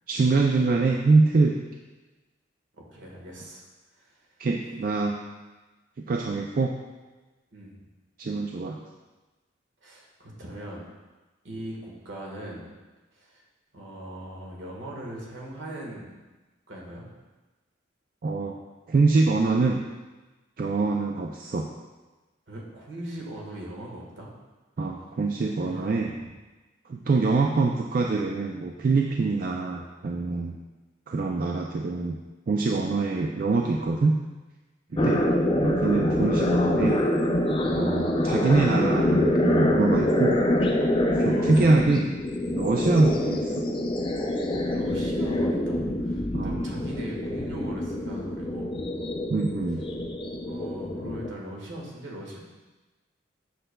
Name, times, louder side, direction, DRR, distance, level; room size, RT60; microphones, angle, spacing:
voice 1, 0.1-1.6 4.4-5.2 6.0-6.7 8.2-8.8 18.2-18.6 18.9-19.8 20.6-21.7 24.8-26.1 26.9-30.6 31.1-32.2 32.5-34.2 34.9-35.2 35.6-37.1 37.7-40.4 41.2-42.1 42.6-43.6 46.3-46.6 49.3-49.9, right 3 dB, 45° right, 1 dB, 0.3 m, -24 dB
voice 2, 2.8-3.7 3.9-4.2 7.5-7.8 9.8-10.9 11.4-12.6 13.1-13.4 13.7-16.1 16.7-17.0 22.5-24.3 25.6-26.0 34.9-35.1 41.2-41.8 44.6-48.8 50.4-52.4, right 1 dB, 70° right, -2 dB, 1.4 m, -40 dB
sound 1, 35.0-51.3, left 1 dB, 25° left, 0.4 m, -25 dB
7.8 x 6.4 x 2.2 m, 1.2 s
head